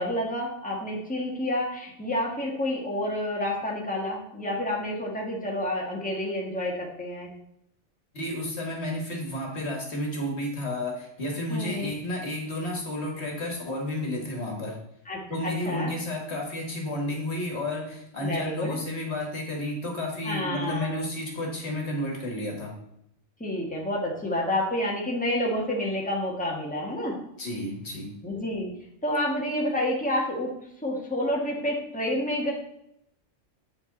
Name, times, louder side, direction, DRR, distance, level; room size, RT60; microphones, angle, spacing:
voice 1, 0.0-7.3 11.5-11.9 15.1-15.9 18.2-18.8 20.2-21.0 23.4-27.1 28.2-28.7 29.0-30.5 30.8-32.5, left 1 dB, 5° left, -3 dB, 1.7 m, -29 dB
voice 2, 8.1-14.8 15.3-22.8 27.4-28.1, left 1 dB, 60° left, 0 dB, 1.9 m, -31 dB
8.3 x 6.0 x 4.0 m, 0.76 s
omnidirectional pair, 1.2 m